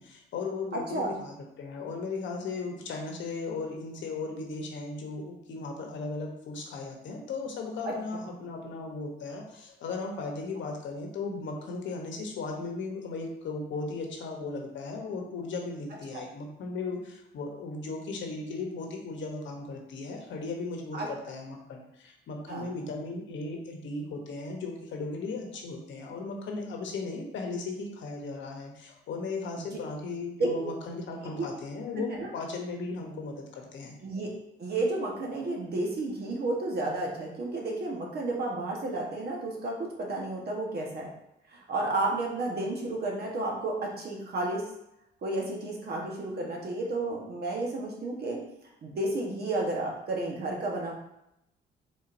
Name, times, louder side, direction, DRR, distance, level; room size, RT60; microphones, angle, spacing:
voice 1, 0.0-34.0 35.4-35.6, left 3 dB, 70° left, 2 dB, 0.9 m, -36 dB
voice 2, 0.7-1.1 7.8-7.9 16.1-16.2 20.9-21.1 22.5-22.7 29.6-29.7 30.4-30.7 31.4-31.5 32.1-32.3 34.0-34.3 34.6-41.1 41.5-44.6 45.2-48.4 48.8-50.9, right 2 dB, 55° right, -1 dB, 1.2 m, -32 dB
4.1 x 3.7 x 2.6 m, 0.81 s
cardioid pair, 90°, 20 cm